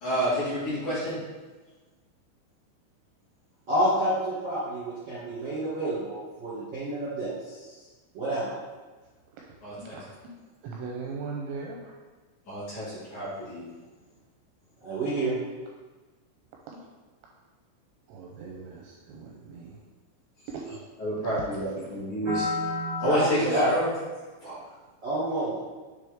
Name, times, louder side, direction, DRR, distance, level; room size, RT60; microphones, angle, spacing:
voice 1, 0.0-1.2 9.6-10.0 12.5-13.6 21.0-22.5 23.0-23.9 24.4-24.6, equal, 50° left, -12 dB, 2.7 m, -29 dB
voice 2, 3.7-7.7 8.1-8.5 14.8-15.3 22.2-23.8 25.0-25.5, right 1 dB, 60° right, -11 dB, 1.6 m, -29 dB
voice 3, 10.6-11.8 18.1-19.8 20.5-20.6, right 4 dB, 85° right, -1 dB, 2.6 m, -38 dB
8.3 x 3.5 x 3.5 m, 1.3 s
omnidirectional pair, 5.7 m